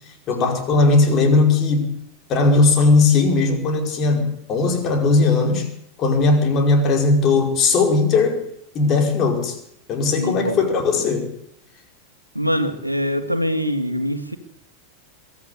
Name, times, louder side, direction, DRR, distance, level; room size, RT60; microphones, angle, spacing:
voice 1, 0.3-1.9 2.3-5.6 6.0-8.4 8.7-9.6 9.9-11.3, left 3 dB, 35° left, 4 dB, 5.0 m, -18 dB
voice 2, 10.1-10.6 12.3-14.4, equal, 90° right, 9 dB, 1.8 m, -24 dB
22.5 x 13.5 x 8.6 m, 0.72 s
figure-of-eight pair, 90°, 0 cm